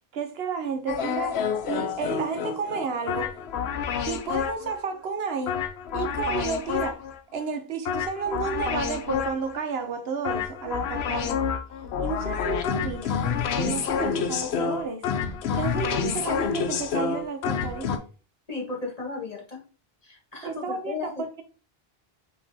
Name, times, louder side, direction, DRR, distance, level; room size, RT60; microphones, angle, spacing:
voice 1, 0.1-3.4 4.1-5.6 5.9-7.0 7.3-11.5 12.0-15.1 15.5-18.0 20.4-21.4, right 5 dB, 75° right, 1.0 m, -32 dB
sound 1, 0.9-4.8 5.5-7.2 7.8-9.6 10.2-18.0, left 7 dB, 85° left, 0.9 m, -28 dB
voice 2, 18.5-19.6 20.0-21.1, left 3 dB, 40° left, 1.4 m, -34 dB
5.9 x 3.0 x 2.7 m
omnidirectional pair, 1.0 m